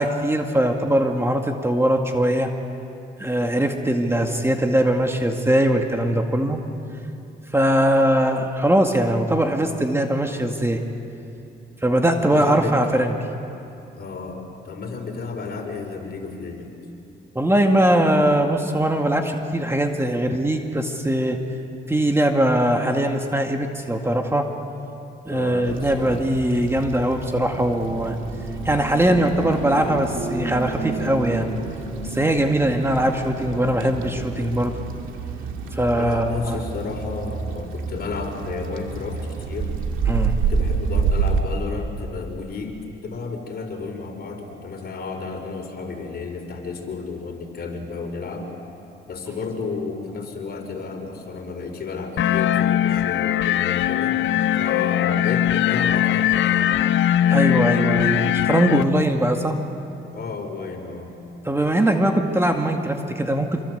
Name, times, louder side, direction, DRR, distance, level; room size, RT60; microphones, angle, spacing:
voice 1, 0.0-2.5 3.2-6.6 7.5-10.8 11.8-13.2 17.4-21.4 21.9-24.5 25.3-28.2 28.6-31.5 32.1-34.8 35.7-36.6 40.1-40.4 57.3-59.6 61.4-63.6, right 1 dB, 10° right, 3 dB, 2.0 m, -21 dB
voice 2, 12.2-12.8 13.9-16.7 25.3-26.2 35.9-39.7 40.5-48.5 49.1-54.3 54.6-56.8 60.1-61.1, left 4 dB, 55° left, 3 dB, 4.7 m, -32 dB
sound 1, 25.6-41.4, right 5 dB, 85° right, 2.3 m, -29 dB
sound 2, 52.2-58.8, left 11 dB, 70° left, 0.8 m, -20 dB
27.0 x 23.5 x 8.0 m, 2.7 s
cardioid pair, 90°, 20 cm